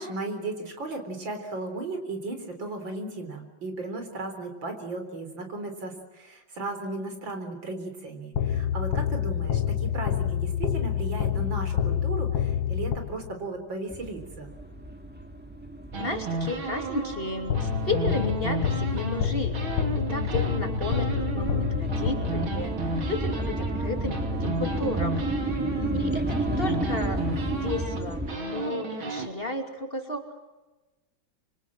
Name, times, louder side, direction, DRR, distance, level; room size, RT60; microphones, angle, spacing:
voice 1, 0.0-14.5 25.7-26.3, right 2 dB, 65° right, 6 dB, 4.6 m, -35 dB
sound 1, 8.4-13.5 17.5-22.7, left 9 dB, 75° left, 1.8 m, -28 dB
sound 2, 13.9-28.4, right 1 dB, 5° right, 1.9 m, -32 dB
sound 3, 15.9-19.3 19.5-29.3, right 3 dB, 80° right, 3.4 m, -33 dB
voice 2, 16.0-19.6 19.9-25.5 25.9-27.2 27.6-30.3, left 2 dB, 25° left, 4 dB, 2.9 m, -33 dB
26.0 x 25.5 x 7.6 m, 1.1 s
omnidirectional pair, 2.2 m